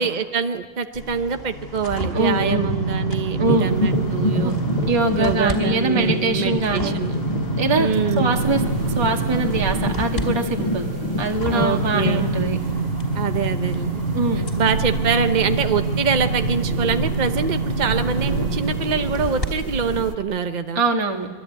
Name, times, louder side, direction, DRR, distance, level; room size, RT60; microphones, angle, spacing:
voice 1, 0.0-4.6 5.2-7.3 7.8-8.3 11.5-12.3 13.1-14.0 14.6-20.8, right 6 dB, 50° right, 7 dB, 0.5 m, -24 dB
sound 1, 0.9-5.6 6.0-19.5 20.0-20.1, right 2 dB, 30° left, 3.7 m, -26 dB
voice 2, 2.1-2.7 3.4-3.7 4.4-4.5 4.9-7.0 7.6-7.9 8.2-8.6 8.9-10.8 11.2-12.6 14.1-14.4 20.7-21.3, right 3 dB, 15° right, 2 dB, 1.5 m, -23 dB
sound 2, 3.4-12.4, left 1 dB, 90° left, 5.0 m, -26 dB
sound 3, 8.3-20.2, right 6 dB, 70° right, 2.0 m, -33 dB
26.5 x 22.0 x 9.3 m, 1.4 s
omnidirectional pair, 2.2 m